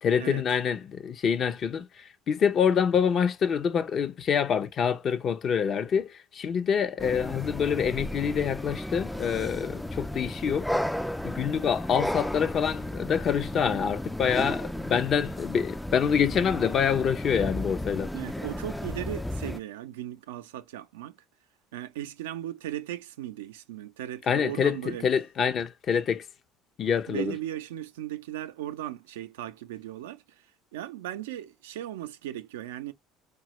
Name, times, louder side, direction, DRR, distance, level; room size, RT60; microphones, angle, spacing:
voice 1, 0.0-10.7 11.2-18.1 24.3-26.2 26.8-27.4, left 7 dB, 45° left, 0.6 m, -26 dB
sound 1, 7.0-19.6, left 1 dB, 5° left, 0.3 m, -34 dB
voice 2, 18.1-21.2 21.7-25.1 27.1-30.2 30.7-32.9, right 13 dB, 90° right, 0.4 m, -37 dB
4.0 x 2.3 x 2.9 m
supercardioid pair, 80°, 0 cm